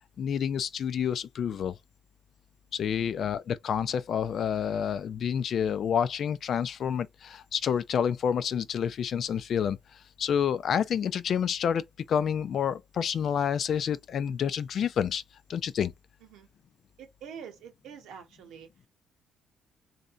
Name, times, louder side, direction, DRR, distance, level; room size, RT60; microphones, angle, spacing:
voice 1, 0.2-1.8 2.7-15.2 15.5-15.9, left 8 dB, 60° left, 0.4 m, -29 dB
voice 2, 3.0-3.3 16.2-16.5 17.0-18.7, right 7 dB, 85° right, 1.0 m, -46 dB
3.3 x 2.7 x 3.7 m
cardioid pair, 90°, 0 cm